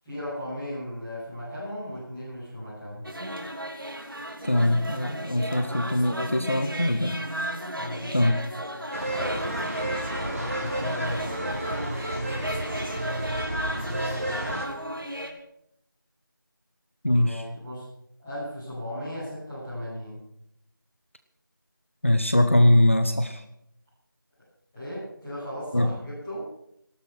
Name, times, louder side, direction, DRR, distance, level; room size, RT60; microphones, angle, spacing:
voice 1, 0.0-3.0 7.7-8.2 10.2-12.0 13.5-14.7 17.1-17.9 18.2-20.2 24.7-26.5, equal, 5° left, -17 dB, 7.1 m, -36 dB
sound 1, 3.0-15.3, right 1 dB, 75° right, 3.2 m, -34 dB
voice 2, 4.4-7.2 8.1-8.4 17.0-17.4 22.0-23.4 25.7-25.9, left 1 dB, 35° left, 9 dB, 0.9 m, -22 dB
sound 2, 8.9-14.7, right 1 dB, 40° right, 3.7 m, -31 dB
18.0 x 12.5 x 6.3 m, 0.76 s
figure-of-eight pair, 175°, 12 cm